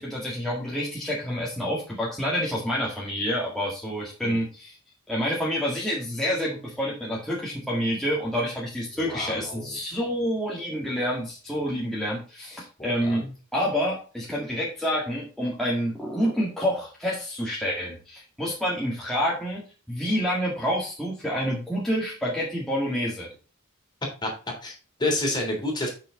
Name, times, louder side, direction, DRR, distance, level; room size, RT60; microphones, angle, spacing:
voice 1, 0.0-4.8 5.1-13.2 13.5-19.6 19.9-23.3, equal, ahead, -6 dB, 1.9 m, -28 dB
voice 2, 8.9-9.8 12.8-13.3 24.2-24.3 24.6-25.9, left 1 dB, 20° left, 1 dB, 3.1 m, -29 dB
8.3 x 6.1 x 3.8 m, 0.36 s
head